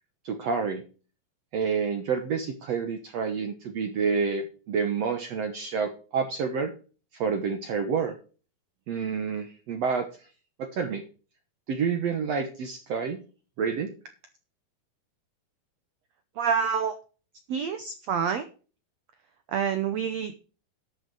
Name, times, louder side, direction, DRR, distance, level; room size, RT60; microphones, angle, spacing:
voice 1, 0.3-0.8 1.5-6.7 7.1-8.1 8.9-10.1 10.6-11.0 11.7-13.2 13.6-13.9, right 5 dB, 65° right, 6 dB, 1.7 m, -28 dB
voice 2, 16.4-16.9 17.5-18.5 19.5-20.4, right 7 dB, 80° right, 9 dB, 1.5 m, -27 dB
12.0 x 6.6 x 4.8 m, 0.36 s
omnidirectional pair, 4.2 m